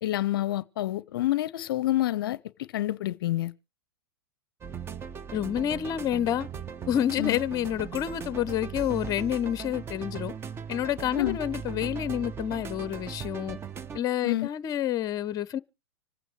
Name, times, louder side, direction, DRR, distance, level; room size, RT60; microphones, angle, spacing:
voice 1, 0.0-3.5 7.2-7.4 11.2-11.4 14.2-14.5, left 15 dB, 60° left, 0.6 m, -28 dB
Mysterious Things (Indefinite table remix), 4.6-14.0, right 6 dB, 20° right, 0.7 m, -38 dB
voice 2, 5.3-6.5 6.9-10.3 10.7-13.6 13.9-15.6, left 10 dB, 25° left, 0.7 m, -28 dB
26.0 x 9.0 x 3.2 m
hypercardioid pair, 115°, 13 cm